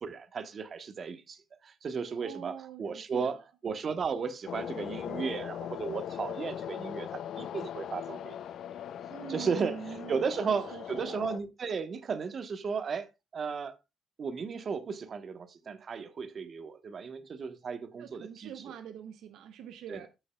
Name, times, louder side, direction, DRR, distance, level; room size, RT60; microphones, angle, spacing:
voice 1, 0.0-3.4 3.6-8.4 9.3-13.7 14.2-18.6 19.9-20.1, right 5 dB, 50° right, 1.2 m, -35 dB
voice 2, 2.2-3.4 9.1-11.2 18.0-20.1, right 9 dB, 85° right, 0.7 m, -44 dB
sound 1, 4.5-11.4, left 9 dB, 70° left, 0.5 m, -40 dB
13.5 x 6.9 x 2.3 m
cardioid pair, 90°, 0 cm